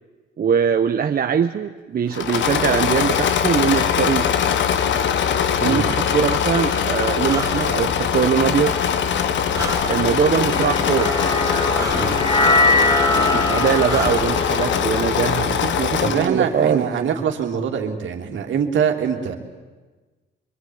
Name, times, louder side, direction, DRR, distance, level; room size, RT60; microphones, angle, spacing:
voice 1, 0.4-4.3 5.5-8.8 9.9-11.1 13.2-16.9, right 7 dB, 50° right, 6 dB, 1.1 m, -22 dB
Engine / Mechanisms, 2.1-16.4, left 8 dB, 70° left, 1.6 m, -22 dB
Breathing, 6.1-14.4, right 3 dB, 15° right, 2.1 m, -35 dB
sound 1, 10.5-16.9, left 2 dB, 15° left, 2.3 m, -22 dB
voice 2, 16.0-19.4, right 7 dB, 70° right, 3 dB, 3.3 m, -23 dB
25.5 x 23.5 x 9.6 m, 1.3 s
cardioid pair, 90°, 20 cm